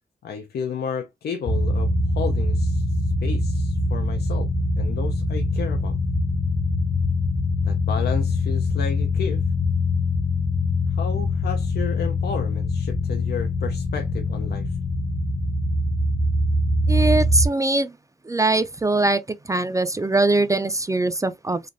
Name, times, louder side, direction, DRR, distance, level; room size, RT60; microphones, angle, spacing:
voice 1, 0.2-6.0 7.6-9.4 10.9-14.8, left 6 dB, 80° left, 0.5 m, -32 dB
sound 1, 1.5-17.5, left 2 dB, 45° left, 0.7 m, -23 dB
voice 2, 16.9-17.9 18.3-19.2 19.5-21.6, right 2 dB, 20° right, 0.3 m, -21 dB
3.3 x 2.5 x 2.5 m
wide cardioid pair, 100°, 17 cm